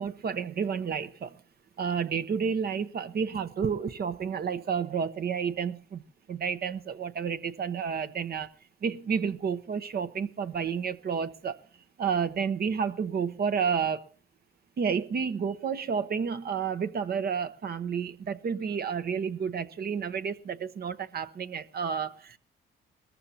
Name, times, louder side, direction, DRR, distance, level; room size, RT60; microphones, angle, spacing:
voice 1, 0.0-1.3 1.8-6.0 6.3-8.5 8.8-11.6 12.0-14.0 14.8-22.4, right 6 dB, 50° right, 1.0 m, -30 dB
20.0 x 14.0 x 2.9 m
cardioid pair, 90°, 20 cm